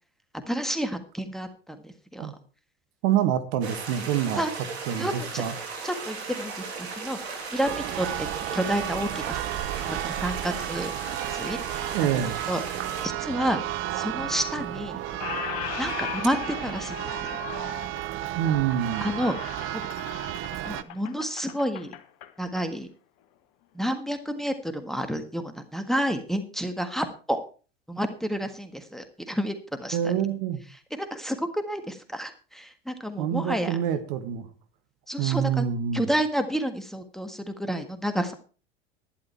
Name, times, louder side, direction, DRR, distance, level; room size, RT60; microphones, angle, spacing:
voice 1, 0.3-2.3 4.3-4.5 5.0-5.4 5.8-9.4 9.9-10.9 11.3-11.6 12.0-12.2 12.5-12.6 13.0-13.6 13.9-15.0 15.8-17.4 19.0-19.8 20.6-21.9 22.4-22.9 23.7-27.4 27.9-30.1 30.7-33.8 35.1-35.6 35.9-38.3, equal, ahead, 7 dB, 1.6 m, -30 dB
voice 2, 3.0-4.4 4.9-5.5 11.9-12.4 18.4-19.1 29.9-30.6 33.2-34.5 35.2-36.1, right 9 dB, 55° right, 9 dB, 1.7 m, -26 dB
sound 1, 3.6-13.1, right 4 dB, 75° right, 3.0 m, -37 dB
Church bell, 7.6-20.8, right 14 dB, 40° right, 0.7 m, -33 dB
Squeak, 14.2-14.8 15.1-22.7, left 12 dB, 50° left, 1.3 m, -38 dB
11.5 x 11.0 x 4.4 m, 0.37 s
hypercardioid pair, 80°, 32 cm